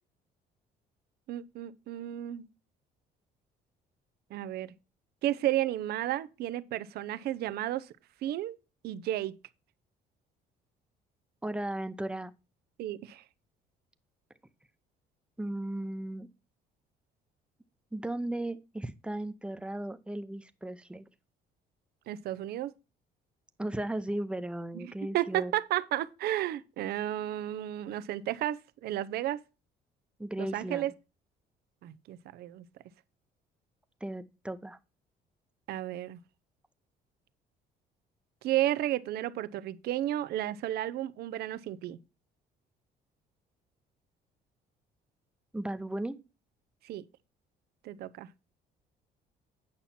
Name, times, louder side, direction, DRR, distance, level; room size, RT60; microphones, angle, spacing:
voice 1, 1.3-2.4 4.3-4.7 5.2-7.9 8.2-8.6 8.8-9.4 12.8-13.2 22.1-22.7 24.7-29.4 30.4-30.9 31.8-32.6 35.7-36.2 38.4-42.0 46.8-47.0 47.8-48.3, right 13 dB, 70° right, 0.6 m, -32 dB
voice 2, 11.4-12.3 15.4-16.3 17.9-21.0 23.6-25.5 30.2-30.9 34.0-34.8 45.5-46.2, right 1 dB, 5° right, 0.7 m, -36 dB
8.8 x 5.7 x 4.2 m
cardioid pair, 110°, 17 cm